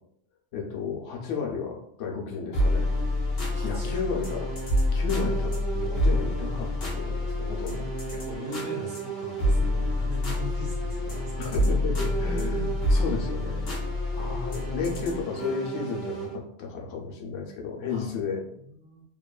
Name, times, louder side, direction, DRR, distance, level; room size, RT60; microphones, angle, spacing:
voice 1, 0.5-2.9 3.6-4.5 4.9-7.9 11.4-13.7 14.1-18.4, left 5 dB, 90° left, 0 dB, 1.0 m, -33 dB
sound 1, 2.5-16.4, left 1 dB, 60° left, 0.9 m, -27 dB
voice 2, 3.5-4.0 8.0-11.5 17.9-18.1 18.5-19.0, left 1 dB, 60° right, -3 dB, 1.2 m, -40 dB
2.9 x 2.2 x 2.2 m, 0.71 s
omnidirectional pair, 1.2 m